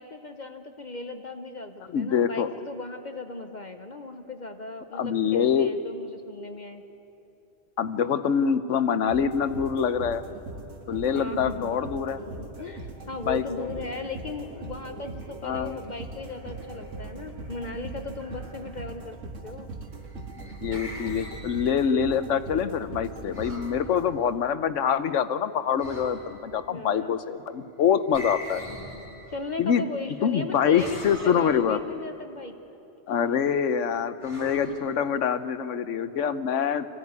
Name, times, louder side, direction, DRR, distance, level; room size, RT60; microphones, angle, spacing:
voice 1, 0.0-6.8 11.1-11.8 12.6-19.7 26.7-27.2 29.3-32.6 34.5-34.8, left 3 dB, 40° left, 7 dB, 0.9 m, -37 dB
voice 2, 1.9-2.5 4.9-5.7 7.8-10.2 10.9-12.2 13.3-13.7 15.4-15.8 20.6-28.6 29.6-29.9 30.2-31.8 33.1-36.9, left 7 dB, 80° left, 12 dB, 1.2 m, -25 dB
sound 1, 9.1-24.3, right 3 dB, 85° right, 2.0 m, -41 dB
Telephone, 11.1-11.2 11.6-13.0 13.6-15.9 16.2-19.0, right 1 dB, 50° right, 4.7 m, -49 dB
sound 2, 20.1-22.1 23.3-23.8 25.8-26.5 28.1-29.6 30.8-31.8 34.2-35.4, equal, 25° right, 3.2 m, -42 dB
24.0 x 15.5 x 9.5 m, 2.9 s
omnidirectional pair, 1.3 m